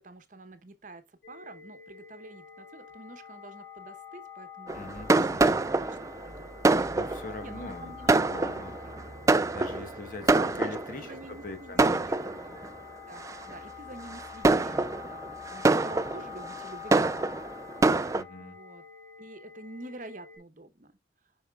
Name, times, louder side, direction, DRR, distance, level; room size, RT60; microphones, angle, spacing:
voice 1, 0.0-4.9 5.2-6.9 7.4-9.0 10.3-12.0 13.1-17.1 18.4-18.8 19.2-20.9, right 2 dB, 45° right, 0.9 m, -47 dB
sound 1, 1.2-20.4, left 8 dB, 75° left, 4.5 m, -47 dB
voice 2, 4.7-5.6 6.9-8.0 8.3-8.8 9.5-12.6 18.1-18.6, left 2 dB, 50° left, 1.1 m, -42 dB
Fireworks, 4.7-11.1 11.8-12.7 13.2-13.5 14.1-18.2, right 3 dB, 20° right, 0.3 m, -26 dB
7.1 x 5.6 x 2.3 m
head